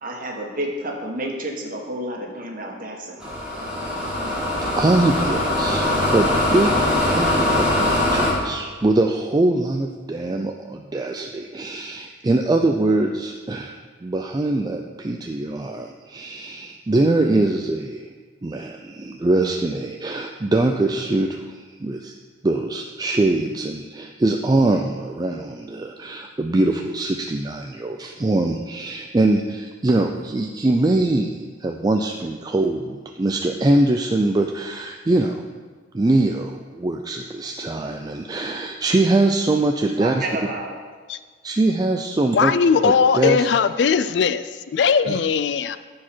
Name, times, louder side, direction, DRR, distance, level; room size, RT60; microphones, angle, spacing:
voice 1, 0.0-3.3 40.0-40.7, right 1 dB, 50° right, 0 dB, 1.5 m, -30 dB
sound 1, 3.2-8.3, left 1 dB, 5° right, 2.5 m, -21 dB
voice 2, 4.6-5.9 6.1-18.1 18.4-22.1 22.4-35.4 35.9-40.3 41.4-43.5 45.1-45.2, right 2 dB, 20° right, 3 dB, 0.4 m, -22 dB
voice 3, 42.3-45.8, left 6 dB, 70° left, 13 dB, 0.4 m, -19 dB
14.0 x 4.8 x 4.4 m, 1.5 s
head